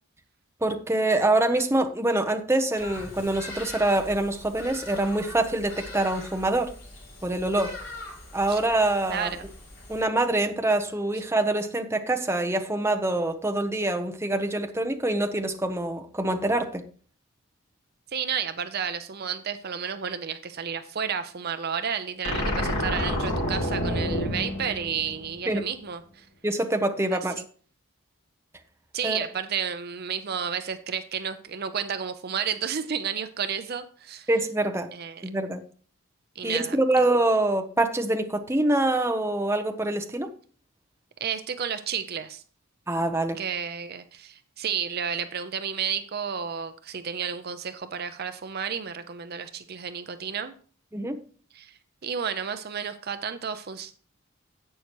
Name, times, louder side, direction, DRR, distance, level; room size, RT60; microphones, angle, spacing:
voice 1, 0.6-6.7 7.2-7.8 8.3-9.3 9.9-16.8 25.5-25.7 26.4-27.4 29.0-29.2 34.3-34.9 35.2-35.6 36.4-40.3 42.9-43.4 50.9-51.2, right 2 dB, 10° right, 5 dB, 0.8 m, -25 dB
Bird vocalization bird call bird song, 2.7-10.0, left 2 dB, 50° left, 5.5 m, -42 dB
voice 2, 9.1-9.4 18.1-26.3 27.1-27.2 28.9-34.3 34.9-35.2 36.4-36.8 41.2-42.4 43.4-50.5 51.5-54.1, right 7 dB, 45° right, 10 dB, 0.5 m, -32 dB
sound 1, 22.2-25.6, equal, 75° left, 3.1 m, -28 dB
11.0 x 8.2 x 3.0 m, 0.43 s
head